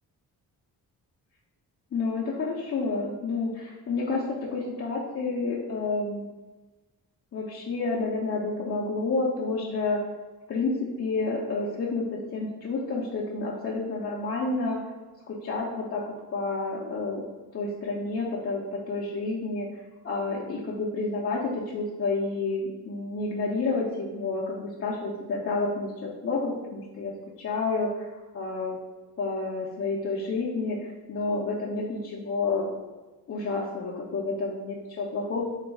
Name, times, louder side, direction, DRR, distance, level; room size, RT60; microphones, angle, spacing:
voice 1, 1.9-6.3 7.3-10.0 10.5-14.8 15.3-17.2 17.5-19.7 20.0-28.8 29.2-32.7 33.3-35.4, left 3 dB, 40° left, -5 dB, 0.5 m, -30 dB
3.1 x 2.2 x 3.4 m, 1.2 s
cardioid pair, 90°, 38 cm